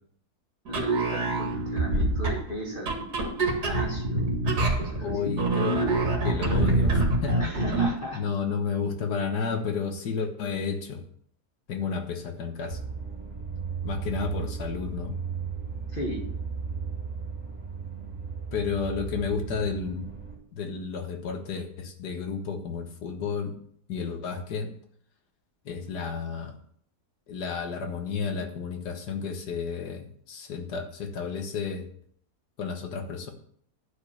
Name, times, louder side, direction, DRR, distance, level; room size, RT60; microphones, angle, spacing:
voice 1, 0.7-4.3 4.8-5.4 7.4-8.2 15.9-16.2, left 1 dB, 35° left, -2 dB, 2.0 m, -36 dB
sound 1, 0.7-8.0, right 2 dB, 80° right, 2.7 m, -26 dB
voice 2, 5.0-5.8 6.2-7.4 8.1-11.0 11.7-12.8 13.8-15.2 18.5-20.1 20.5-23.6 23.9-24.7 25.7-26.5 27.3-31.9 32.6-33.3, left 5 dB, 90° left, 5 dB, 1.9 m, -31 dB
sound 2, 12.7-20.4, right 6 dB, 45° right, 3.3 m, -35 dB
11.0 x 5.1 x 7.0 m, 0.63 s
omnidirectional pair, 1.7 m